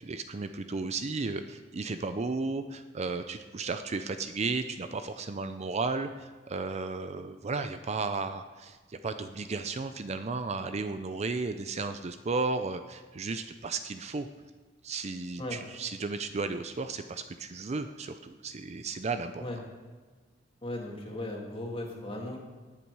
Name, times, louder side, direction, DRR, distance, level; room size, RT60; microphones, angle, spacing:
voice 1, 0.0-14.3 14.8-19.4, right 3 dB, 35° right, 9 dB, 0.5 m, -34 dB
voice 2, 20.6-22.4, left 1 dB, 30° left, 0 dB, 2.1 m, -37 dB
18.5 x 7.1 x 4.7 m, 1.4 s
head